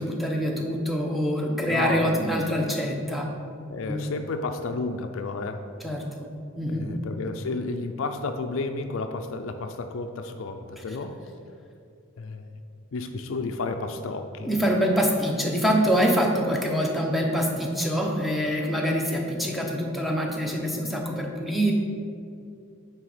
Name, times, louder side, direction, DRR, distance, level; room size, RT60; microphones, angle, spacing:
voice 1, 0.0-3.3 3.9-4.0 5.8-6.3 6.6-6.9 10.8-10.9 14.4-21.7, equal, ahead, 0 dB, 0.8 m, -25 dB
voice 2, 1.7-2.3 3.7-5.6 6.7-11.2 12.2-12.5 12.9-14.5, left 3 dB, 65° left, 6 dB, 0.4 m, -32 dB
9.1 x 3.4 x 4.9 m, 2.4 s
head